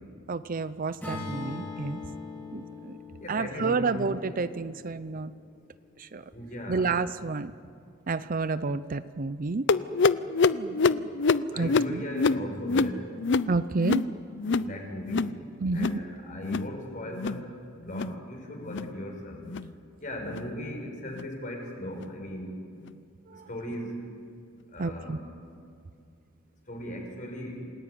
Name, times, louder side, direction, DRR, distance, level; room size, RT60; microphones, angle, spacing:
voice 1, 0.3-2.0 2.5-3.0 3.3-5.3 6.0-6.2 6.7-7.5 8.1-9.7 10.5-11.1 11.6-12.0 13.5-14.0 15.6-15.9 23.3-23.5 24.8-25.2, right 4 dB, 45° right, 14 dB, 0.6 m, -30 dB
Acoustic guitar / Strum, 1.0-5.2, left 3 dB, 10° left, 5.0 m, -40 dB
voice 2, 3.2-4.0 6.3-7.0 11.5-13.1 14.5-15.3 15.7-17.4 17.9-19.4 20.0-22.6 23.3-24.0 24.7-25.2 26.7-27.6, equal, 40° left, 1 dB, 5.8 m, -37 dB
sound 1, 9.7-14.7 15.0-15.4 15.7-16.0 16.4-16.7 17.1-17.4 17.8-18.2 18.6-18.9 19.4-19.7 20.3-20.5 21.1-21.3 22.0-22.1 22.8-22.9, left 4 dB, 60° left, 0.6 m, -26 dB
28.0 x 19.0 x 9.5 m, 2.4 s
head